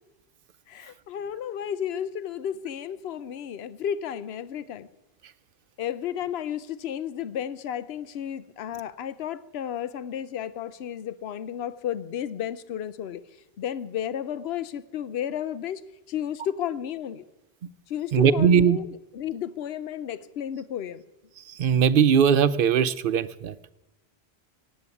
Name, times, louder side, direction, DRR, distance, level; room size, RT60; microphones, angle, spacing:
voice 1, 0.7-4.9 5.8-13.2 13.6-15.8 16.1-17.2 17.9-21.0, left 9 dB, 75° left, 15 dB, 0.9 m, -33 dB
voice 2, 18.1-18.8 21.5-23.6, right 7 dB, 60° right, 15 dB, 0.8 m, -20 dB
17.0 x 8.5 x 9.6 m, 1.0 s
omnidirectional pair, 1.1 m